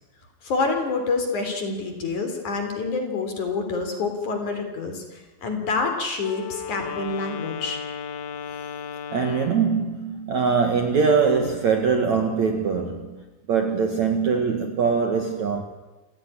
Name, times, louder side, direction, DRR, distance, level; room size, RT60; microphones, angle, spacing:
voice 1, 0.4-7.8, left 4 dB, 45° left, 5 dB, 4.6 m, -27 dB
Wind instrument woodwind instrument, 6.2-9.7, left 7 dB, 85° left, 4.1 m, -35 dB
voice 2, 9.1-13.2 13.5-15.6, right 5 dB, 50° right, 5 dB, 2.5 m, -22 dB
29.0 x 16.0 x 10.0 m, 1.2 s
omnidirectional pair, 5.1 m